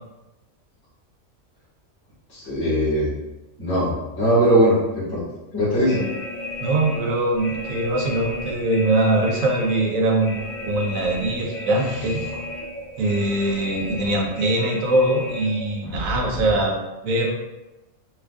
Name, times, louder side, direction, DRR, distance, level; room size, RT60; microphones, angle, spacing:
voice 1, 2.3-3.1 3.6-5.2 5.5-6.1, equal, 20° left, -10 dB, 1.2 m, -20 dB
sound 1, 5.8-16.7, left 1 dB, 65° left, 1.5 m, -33 dB
voice 2, 6.6-10.4 10.6-12.2 13.0-17.3, right 2 dB, 80° right, 0 dB, 1.1 m, -22 dB
4.3 x 2.3 x 2.4 m, 1.0 s
omnidirectional pair, 1.4 m